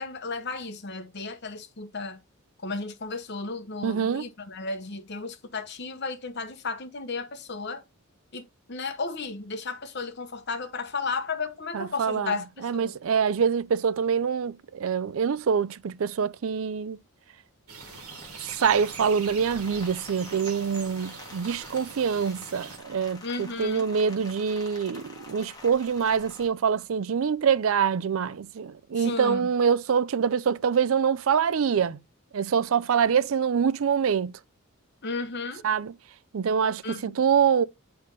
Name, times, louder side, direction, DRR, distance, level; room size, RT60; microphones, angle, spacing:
voice 1, 0.0-2.2 2.6-7.8 8.3-8.4 8.7-13.0 23.2-23.9 29.0-29.5 35.0-35.6 36.8-37.1, left 4 dB, 50° left, 1.0 m, -34 dB
voice 2, 3.8-4.3 11.7-17.0 18.4-32.0 32.3-34.3 35.6-35.9 36.3-37.6, right 6 dB, 70° right, 0.4 m, -25 dB
sound 1, 17.7-22.8, right 5 dB, 85° right, 1.4 m, -43 dB
Rain, 17.8-26.5, left 2 dB, 15° left, 1.4 m, -47 dB
8.1 x 3.4 x 5.2 m
head